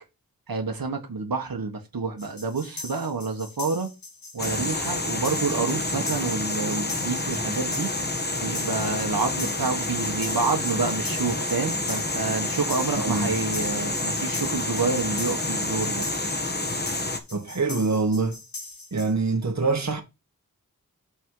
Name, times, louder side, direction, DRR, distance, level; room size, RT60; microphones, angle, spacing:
voice 1, 0.5-3.9 4.3-7.9 8.4-16.0, right 4 dB, 80° right, 1.6 m, -28 dB
sound 1, 2.2-19.1, left 3 dB, 75° left, 3.2 m, -41 dB
sound 2, 4.4-17.2, left 2 dB, 30° left, 1.7 m, -28 dB
voice 2, 13.0-13.3 17.3-18.4 18.9-20.0, right 3 dB, 50° right, 1.8 m, -25 dB
6.3 x 5.9 x 4.9 m
wide cardioid pair, 50°, 35 cm